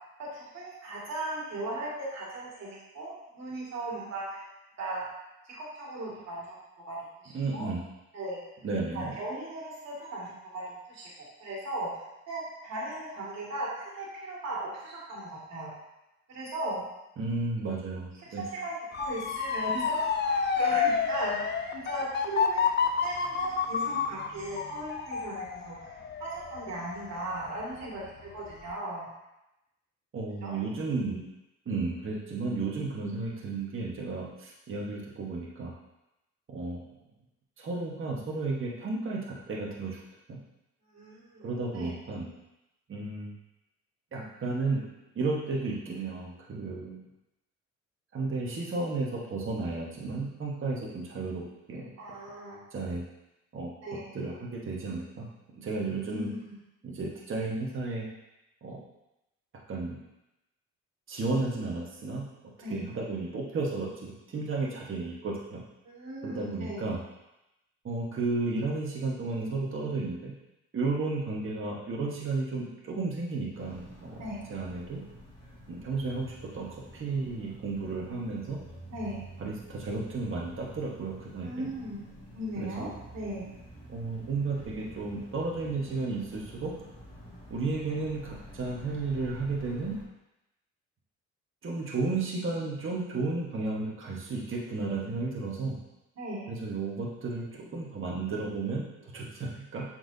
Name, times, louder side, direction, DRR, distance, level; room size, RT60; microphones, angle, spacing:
voice 1, 0.2-4.4 4.8-5.0 5.5-6.6 6.8-7.0 7.2-7.7 8.1-8.4 8.9-11.9 12.3-15.7 16.3-16.8 18.4-22.7 23.0-29.1 30.4-30.5 40.9-41.5 41.7-41.9 52.0-52.6 53.8-54.1 56.1-56.6 62.6-62.9 65.8-66.8 74.2-74.4 78.9-79.2 81.4-82.0 82.3-83.5 96.2-96.5, right 1 dB, 60° right, -6 dB, 2.3 m, -37 dB
voice 2, 7.3-7.8 8.6-9.1 17.2-18.4 30.1-31.2 31.6-35.7 36.5-36.8 37.6-40.0 40.3-40.4 41.4-42.3 42.9-43.3 44.1-44.8 45.1-47.0 48.1-51.4 51.7-51.9 52.7-53.0 53.5-53.7 54.1-55.3 55.5-56.3 56.8-58.0 58.6-58.8 59.7-60.0 61.1-62.2 62.7-65.6 66.2-67.0 67.8-70.3 70.7-74.2 74.5-75.0 75.7-78.6 79.4-81.7 82.6-82.9 83.9-86.7 87.5-89.9 91.6-95.8 96.5-99.8, right 3 dB, 45° right, -4 dB, 1.4 m, -33 dB
Motor vehicle (road) / Siren, 18.9-27.8 28.3-28.7, left 6 dB, 35° left, 0.5 m, -30 dB
sound 1, 73.5-90.0, equal, 15° left, 2.0 m, -49 dB
7.9 x 4.6 x 2.8 m, 0.92 s
cardioid pair, 90°, 30 cm